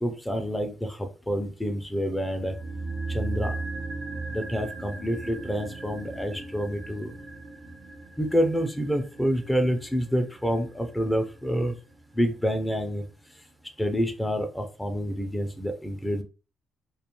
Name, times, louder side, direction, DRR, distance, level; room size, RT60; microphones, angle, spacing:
voice 1, 0.0-2.6 3.1-3.5 4.3-7.1 8.2-11.7 12.1-13.0 13.8-16.2, equal, 10° left, 6 dB, 0.4 m, -28 dB
sound 1, 2.4-12.6 12.9-13.0, right 3 dB, 50° right, 0.5 m, -37 dB
2.3 x 2.2 x 2.9 m, 0.35 s
cardioid pair, 90°, 0 cm